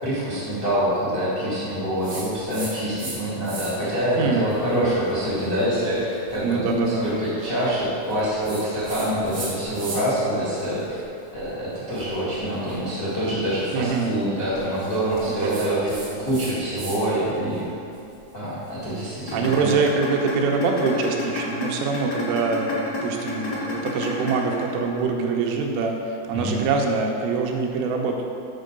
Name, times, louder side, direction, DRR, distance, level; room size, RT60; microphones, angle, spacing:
voice 1, 0.0-11.0 11.3-15.9 16.2-17.6 18.3-19.7 26.3-26.6, equal, 80° left, -10 dB, 0.7 m, -25 dB
sound 1, 2.0-3.2 3.4-3.9 4.5-10.2 10.6-17.0 17.3-19.5, right 2 dB, 70° right, 1.1 m, -39 dB
voice 2, 6.4-7.0 13.7-14.2 15.3-16.3 19.3-28.2, right 4 dB, 90° right, 1 dB, 3.3 m, -24 dB
sound 2, 19.3-25.3, left 4 dB, 55° left, 1.3 m, -30 dB
8.9 x 4.5 x 6.6 m, 2.7 s
omnidirectional pair, 5.4 m